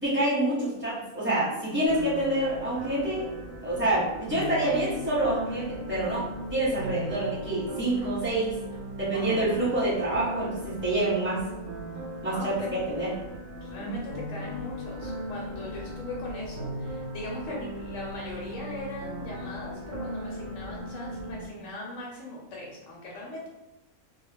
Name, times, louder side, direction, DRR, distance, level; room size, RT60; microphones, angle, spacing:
voice 1, 0.0-3.3 3.6-6.2 6.5-8.5 9.0-11.4 12.2-13.1 13.8-13.9, right 1 dB, 10° right, -9 dB, 0.9 m, -27 dB
sound 1, 1.9-21.5, equal, 65° right, 0.6 m, -38 dB
voice 2, 9.1-9.7 12.2-12.7 13.6-23.5, left 2 dB, 70° left, -3 dB, 0.9 m, -39 dB
2.3 x 2.0 x 3.2 m, 0.96 s
omnidirectional pair, 1.5 m